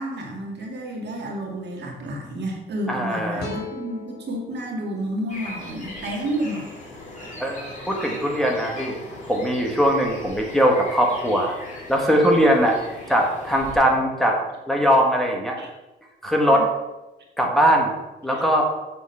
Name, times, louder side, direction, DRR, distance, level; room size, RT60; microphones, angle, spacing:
voice 1, 0.0-6.7 15.6-15.7 16.5-16.7 18.3-18.4, right 1 dB, 60° right, 0 dB, 2.0 m, -30 dB
voice 2, 2.9-3.4 7.4-9.0 9.3-11.5 11.9-12.8 13.1-14.4 14.7-15.6 16.2-16.7 17.4-17.9 18.2-18.7, equal, ahead, 0 dB, 1.4 m, -20 dB
sound 1, 3.4-6.6, left 3 dB, 55° left, 2.2 m, -39 dB
sound 2, 5.3-13.8, left 2 dB, 40° left, 2.9 m, -39 dB
8.1 x 3.7 x 5.6 m, 1.0 s
cardioid pair, 90°, 20 cm